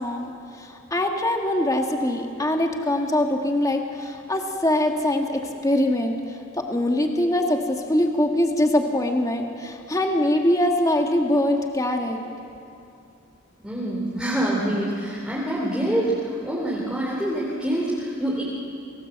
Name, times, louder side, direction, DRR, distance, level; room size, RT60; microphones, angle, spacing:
voice 1, 0.0-12.2, left 1 dB, 15° left, 2 dB, 1.8 m, -23 dB
voice 2, 13.6-18.4, right 1 dB, 5° right, -6 dB, 3.7 m, -26 dB
28.5 x 19.0 x 8.1 m, 2.5 s
head